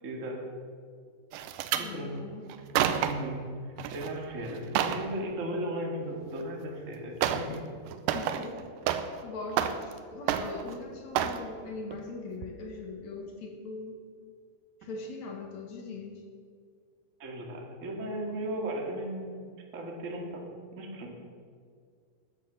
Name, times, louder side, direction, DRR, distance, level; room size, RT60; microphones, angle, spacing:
voice 1, 0.0-0.4 1.8-2.2 3.0-7.7 17.2-19.4 19.7-20.4 20.7-21.1, right 1 dB, 30° right, 1 dB, 1.5 m, -36 dB
sound 1, 1.3-1.9 2.5-3.3 3.8-4.1 4.5-5.1 6.4-6.5 7.2-7.6 7.9-9.2 9.5-10.0 10.3-10.8 11.1-11.4 11.9-12.1 12.4-12.5, right 10 dB, 75° right, 2.0 m, -29 dB
voice 2, 1.7-2.5 8.1-8.7 9.0-14.0 14.8-16.2, left 3 dB, 55° left, 2 dB, 2.5 m, -41 dB
13.5 x 9.9 x 6.8 m, 2.1 s
omnidirectional pair, 4.5 m